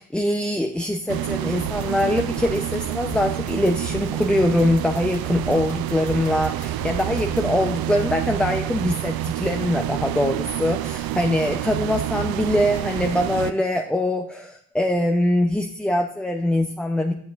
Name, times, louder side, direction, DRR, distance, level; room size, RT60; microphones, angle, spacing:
voice 1, 0.0-17.1, left 1 dB, ahead, 4 dB, 0.7 m, -23 dB
sound 1, 1.1-13.5, right 13 dB, 60° right, 0.5 m, -28 dB
sound 2, 1.6-7.5, left 4 dB, 35° left, 2.5 m, -39 dB
9.4 x 8.5 x 2.6 m, 0.63 s
hypercardioid pair, 50°, 41 cm